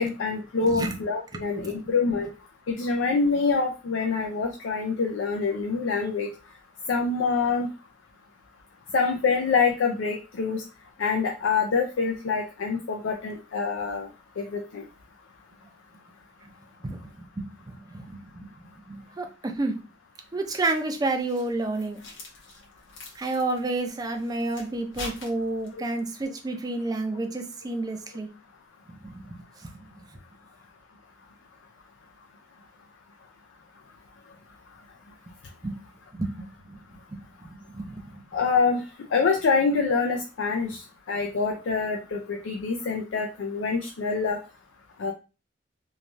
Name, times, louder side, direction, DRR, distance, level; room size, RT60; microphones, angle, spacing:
voice 1, 0.0-2.3 2.7-6.3 6.9-7.7 8.9-10.6 11.0-14.1 14.4-14.8 38.3-38.8 39.1-40.8 41.1-44.4 45.0-45.1, left 4 dB, 90° left, 2 dB, 0.4 m, -25 dB
voice 2, 16.8-18.5 18.9-19.8 20.3-22.0 23.2-28.3 29.0-29.4 29.6-29.9 35.6-35.8 36.1-37.2 37.4-38.2, right 2 dB, 20° right, 4 dB, 0.4 m, -30 dB
sound 1, 20.7-25.9, left 2 dB, 70° left, 1.0 m, -44 dB
3.1 x 2.3 x 2.5 m, 0.31 s
head